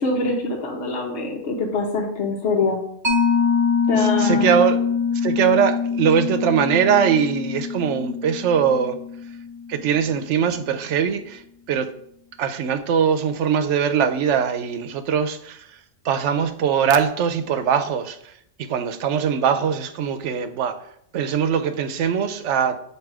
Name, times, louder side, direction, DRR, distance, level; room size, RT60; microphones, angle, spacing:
voice 1, 0.0-2.8 3.9-4.6, left 3 dB, 70° left, 1.2 m, -24 dB
Mallet percussion, 3.0-10.1, left 6 dB, 25° right, 1.0 m, -24 dB
voice 2, 4.0-4.8 5.1-9.0 9.7-11.9 12.4-18.3 18.6-20.8 21.1-22.8, right 7 dB, 80° right, 0.9 m, -21 dB
7.5 x 2.9 x 4.7 m
omnidirectional pair, 1.2 m